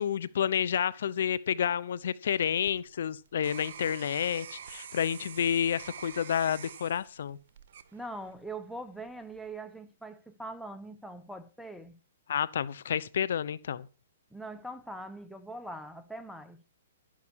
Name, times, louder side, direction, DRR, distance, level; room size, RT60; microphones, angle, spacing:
voice 1, 0.0-7.4 12.3-13.9, left 8 dB, 70° left, 0.9 m, -30 dB
sound 1, 2.3-8.5 9.0-9.5, right 8 dB, 60° right, 1.7 m, -47 dB
voice 2, 7.9-12.0 14.3-16.6, right 1 dB, ahead, 1.2 m, -42 dB
12.5 x 11.5 x 4.7 m
hypercardioid pair, 140°, 0 cm